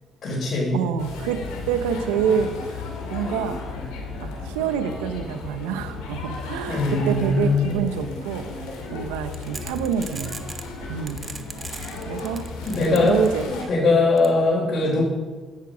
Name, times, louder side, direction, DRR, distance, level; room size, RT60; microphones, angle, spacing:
voice 1, 0.2-0.8 6.7-7.7 12.7-15.0, left 3 dB, 55° left, -6 dB, 4.1 m, -21 dB
voice 2, 0.7-2.5 3.1-3.6 4.2-8.5 8.9-10.4 10.9-11.3 12.1-12.5 12.7-13.7 14.1-14.2, right 7 dB, 85° right, 10 dB, 0.7 m, -27 dB
sound 1, 1.0-13.6, left 3 dB, 80° left, 2.5 m, -34 dB
sound 2, 9.3-10.7 11.1-13.6 14.2-14.3, right 3 dB, 30° right, 1.1 m, -37 dB
9.5 x 9.2 x 5.0 m, 1.3 s
hypercardioid pair, 55°, 0 cm